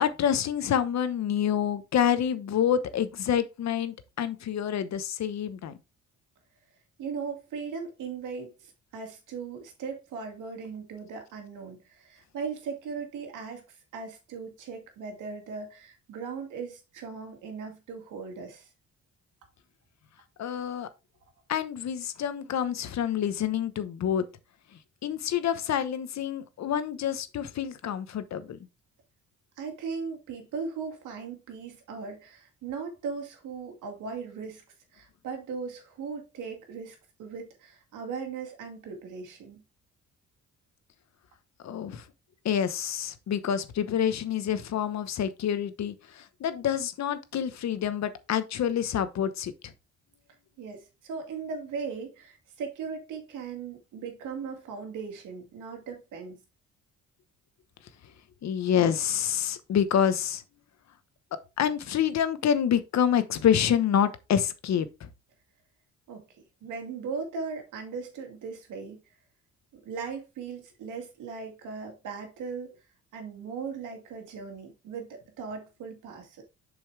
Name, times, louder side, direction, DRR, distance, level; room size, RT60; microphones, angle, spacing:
voice 1, 0.0-5.8 20.4-20.9 21.5-24.2 25.0-28.6 41.6-42.0 42.4-49.5 58.4-60.4 61.6-65.1, left 9 dB, 65° left, 1.1 m, -27 dB
voice 2, 7.0-13.6 13.9-18.7 29.6-34.6 34.9-39.6 50.6-56.4 66.1-69.0 69.7-72.8 73.1-76.4, right 5 dB, 85° right, 2.3 m, -38 dB
7.0 x 5.3 x 3.3 m
cardioid pair, 90°, 30 cm